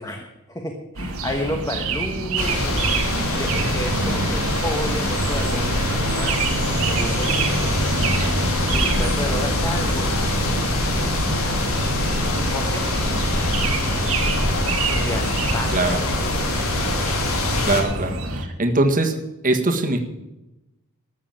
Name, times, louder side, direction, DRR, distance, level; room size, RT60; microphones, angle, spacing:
voice 1, 0.0-7.8 8.7-12.1 12.5-13.5 14.9-16.6, left 1 dB, 15° left, 2 dB, 1.3 m, -32 dB
sound 1, 1.0-18.5, right 3 dB, 70° right, 1.7 m, -26 dB
sound 2, 2.4-17.8, left 2 dB, 70° left, 3.0 m, -24 dB
voice 2, 17.6-19.1 19.4-20.0, right 2 dB, 40° right, 5 dB, 1.6 m, -21 dB
13.0 x 7.4 x 8.9 m, 0.96 s
head